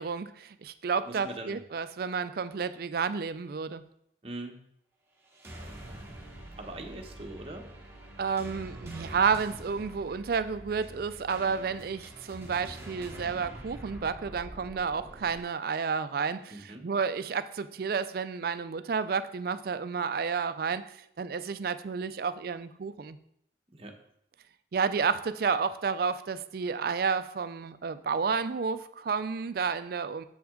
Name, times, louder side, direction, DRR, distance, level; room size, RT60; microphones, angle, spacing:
voice 1, 0.0-3.9 8.2-23.2 24.7-30.2, right 5 dB, 55° right, 13 dB, 0.4 m, -31 dB
voice 2, 1.1-1.5 4.2-4.6 6.6-7.7 16.5-16.9 23.7-24.0, right 2 dB, 30° right, 3 dB, 0.9 m, -41 dB
sound 1, 5.2-15.4, right 1 dB, 15° right, 1.1 m, -45 dB
7.2 x 5.9 x 3.7 m, 0.72 s
head